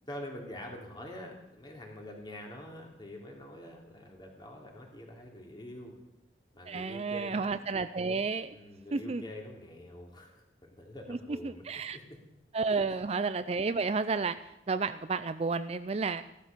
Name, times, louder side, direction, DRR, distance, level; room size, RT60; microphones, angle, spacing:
voice 1, 0.1-6.0 6.5-7.5 8.5-11.6 11.9-12.2 12.7-13.0, left 1 dB, 25° left, 0 dB, 3.1 m, -45 dB
voice 2, 6.7-8.5 8.9-9.2 11.1-11.2 11.4-12.0 12.5-14.4 14.7-16.2, right 4 dB, 35° right, 12 dB, 0.4 m, -31 dB
15.0 x 12.5 x 6.7 m, 0.88 s
head